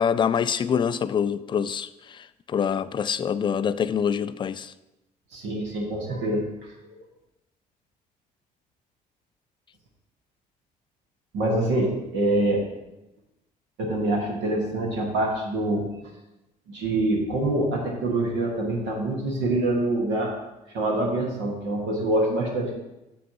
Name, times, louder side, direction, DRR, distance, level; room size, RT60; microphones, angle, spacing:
voice 1, 0.0-4.7, left 7 dB, 25° left, 0.3 m, -25 dB
voice 2, 5.3-6.4 11.3-12.6 13.8-15.8 16.7-20.3 20.7-22.7, right 1 dB, 60° right, 1.4 m, -25 dB
8.3 x 7.7 x 2.9 m
figure-of-eight pair, 50°, 21 cm